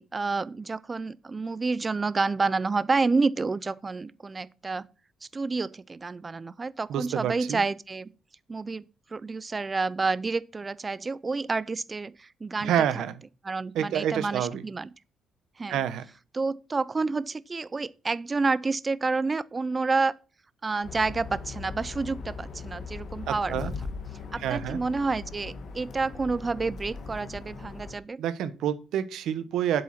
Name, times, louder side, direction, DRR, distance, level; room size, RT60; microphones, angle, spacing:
voice 1, 0.0-4.8 5.3-8.1 8.5-8.8 9.1-12.7 13.4-14.9 15.6-15.8 16.3-20.1 20.6-23.7 24.3-28.2, right 3 dB, 20° right, 0.4 m, -29 dB
voice 2, 6.9-7.6 12.6-13.2 13.7-14.6 15.7-16.0 23.3-23.7 24.4-24.8 28.2-29.8, right 10 dB, 70° right, 1.1 m, -28 dB
sound 1, 20.8-28.0, left 4 dB, 45° left, 1.7 m, -39 dB
7.8 x 7.7 x 5.8 m
cardioid pair, 175°, 0 cm